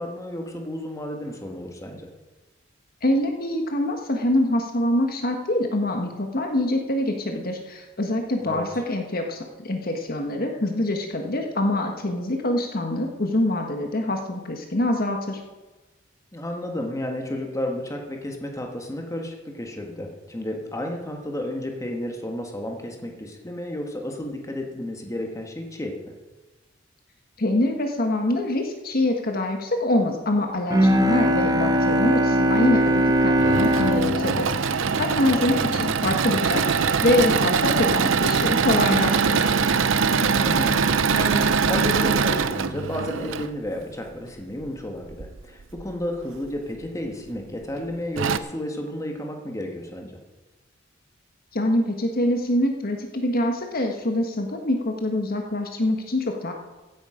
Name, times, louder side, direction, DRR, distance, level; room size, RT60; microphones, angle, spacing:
voice 1, 0.0-2.0 8.4-8.6 16.3-26.0 35.3-35.8 40.2-50.1, left 1 dB, 15° left, 2 dB, 1.7 m, -32 dB
voice 2, 3.0-15.4 27.4-39.5 51.5-56.5, left 1 dB, 50° left, 3 dB, 1.4 m, -25 dB
Bowed string instrument, 30.7-35.8, equal, 20° right, 0.9 m, -21 dB
Engine / Mechanisms, 33.2-43.5 45.1-45.8 46.4-46.5 46.8-46.9 47.8-47.9 48.2-48.4, right 5 dB, 85° right, 0.7 m, -22 dB
15.5 x 10.5 x 5.1 m, 1.2 s
head